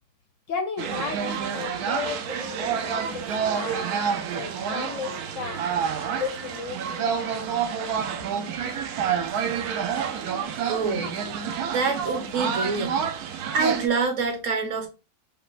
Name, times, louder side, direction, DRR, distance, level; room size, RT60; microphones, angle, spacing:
voice 1, 0.5-5.6 6.2-7.3 7.9-8.0, left 5 dB, 65° left, 0.8 m, -34 dB
sound 1, 0.8-13.9, right 7 dB, 80° right, 1.1 m, -28 dB
voice 2, 10.7-11.2 11.7-13.0 13.5-14.9, right 4 dB, 65° right, 1.1 m, -26 dB
4.8 x 2.2 x 2.4 m
omnidirectional pair, 1.6 m